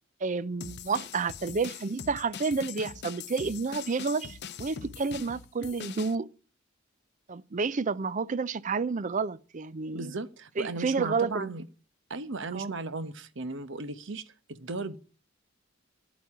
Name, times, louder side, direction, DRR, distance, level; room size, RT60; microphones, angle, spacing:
voice 1, 0.2-6.3 7.3-10.1 10.6-11.5 12.5-12.7, right 4 dB, 40° right, 0.5 m, -30 dB
sound 1, 0.6-6.2, left 7 dB, 55° left, 0.7 m, -42 dB
voice 2, 9.9-11.6 12.1-15.0, right 3 dB, 65° right, 1.0 m, -36 dB
9.5 x 8.3 x 9.6 m
head